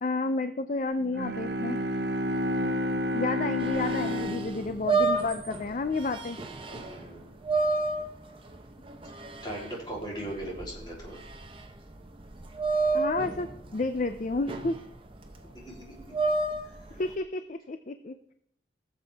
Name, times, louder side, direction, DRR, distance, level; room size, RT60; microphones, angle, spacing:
voice 1, 0.0-1.8 3.1-6.4 12.9-14.8 17.0-18.1, left 3 dB, 40° left, 10 dB, 0.5 m, -31 dB
Bowed string instrument, 1.0-5.9, equal, 60° right, 1.0 m, -31 dB
sound 1, 3.6-17.1, right 3 dB, 30° right, 0.9 m, -32 dB
voice 2, 6.7-7.3 9.4-11.2 15.5-15.9, right 1 dB, 25° left, -3 dB, 3.4 m, -39 dB
18.5 x 7.5 x 3.5 m, 0.70 s
head